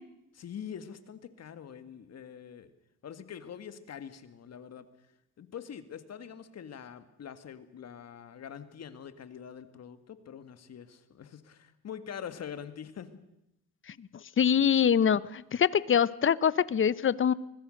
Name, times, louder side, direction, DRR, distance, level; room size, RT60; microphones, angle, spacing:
voice 1, 0.3-2.7 3.0-4.9 5.4-13.2, left 8 dB, 55° left, 10 dB, 2.0 m, -44 dB
voice 2, 14.4-17.3, left 8 dB, 40° left, 18 dB, 0.8 m, -24 dB
24.5 x 21.0 x 6.5 m, 0.84 s
cardioid pair, 90°, 30 cm